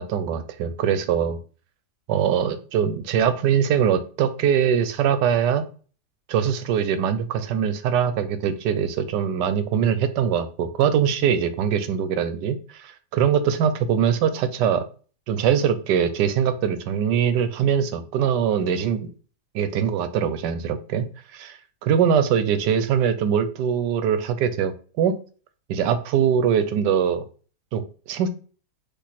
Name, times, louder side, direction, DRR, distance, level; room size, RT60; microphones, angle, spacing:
voice 1, 0.0-1.4 2.1-5.7 6.3-14.8 15.3-19.1 19.5-21.6 21.8-25.1 25.7-27.2 27.7-27.8 28.1-28.3, right 8 dB, 85° right, 11 dB, 1.2 m, -22 dB
4.5 x 2.8 x 4.1 m, 0.40 s
omnidirectional pair, 1.8 m